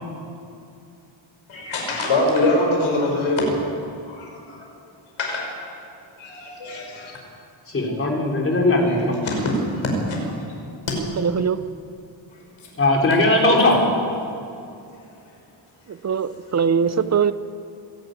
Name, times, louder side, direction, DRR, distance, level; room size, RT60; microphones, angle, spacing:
voice 1, 1.5-3.5 4.1-4.6 5.2-5.5 6.2-7.1 8.9-9.0 9.2-10.6 10.9-11.0 16.9-17.0, left 1 dB, 80° left, 0 dB, 5.9 m, -24 dB
voice 2, 7.7-9.2 12.8-13.9, left 2 dB, 25° left, 0 dB, 3.7 m, -19 dB
voice 3, 11.2-11.6 15.9-17.3, right 6 dB, 35° right, 13 dB, 0.7 m, -21 dB
25.5 x 12.0 x 9.2 m, 2.6 s
wide cardioid pair, 170°, 47 cm